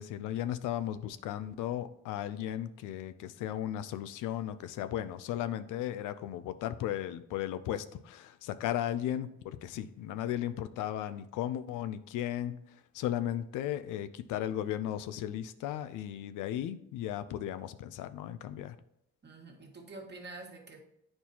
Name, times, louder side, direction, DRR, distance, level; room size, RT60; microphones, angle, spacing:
voice 1, 0.0-18.8, left 11 dB, 90° left, 12 dB, 0.5 m, -36 dB
voice 2, 19.2-20.8, right 2 dB, 35° right, 1 dB, 1.5 m, -47 dB
9.1 x 4.4 x 2.8 m, 0.78 s
cardioid pair, 90°, 30 cm